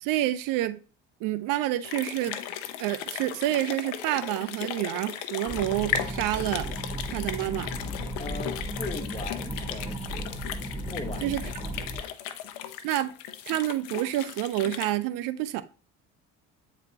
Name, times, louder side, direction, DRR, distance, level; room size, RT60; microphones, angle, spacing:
voice 1, 0.0-0.8 1.2-2.4 2.8-6.7 7.1-7.7 11.2-11.4 12.8-13.1 13.5-15.6, right 14 dB, 70° right, 0.6 m, -28 dB
sound 1, 1.8-14.9, left 10 dB, 80° left, 0.8 m, -36 dB
sound 2, 5.5-12.0, right 1 dB, 10° right, 2.7 m, -35 dB
voice 2, 8.2-10.3 10.9-11.5, left 3 dB, 20° left, 1.1 m, -39 dB
8.6 x 4.1 x 2.8 m
supercardioid pair, 80°, 35 cm